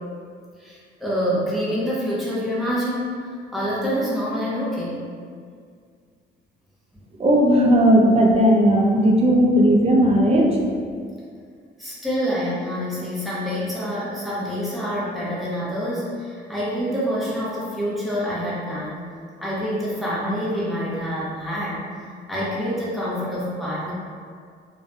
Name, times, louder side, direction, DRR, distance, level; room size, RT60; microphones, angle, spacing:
voice 1, 0.6-3.2 3.5-5.0 11.8-19.0 19.4-21.8 22.3-23.9, equal, ahead, -8 dB, 0.8 m, -26 dB
voice 2, 7.2-10.6, equal, 30° right, 0 dB, 0.4 m, -16 dB
2.5 x 2.2 x 2.5 m, 2.1 s
cardioid pair, 90°, 20 cm